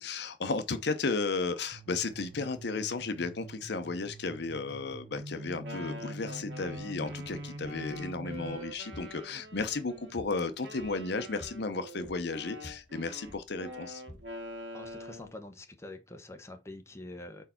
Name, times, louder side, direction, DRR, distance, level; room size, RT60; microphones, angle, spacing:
voice 1, 0.0-14.0, left 3 dB, 60° left, 0.7 m, -34 dB
sound 1, 1.7-8.6, right 1 dB, 55° right, 1.6 m, -44 dB
Wind instrument woodwind instrument, 5.4-10.1 10.6-15.3, equal, 70° right, 1.9 m, -45 dB
sound 2, 6.7-15.3, left 1 dB, 35° left, 1.1 m, -54 dB
voice 2, 14.7-17.4, left 2 dB, 15° left, 0.9 m, -46 dB
4.6 x 4.5 x 5.6 m
head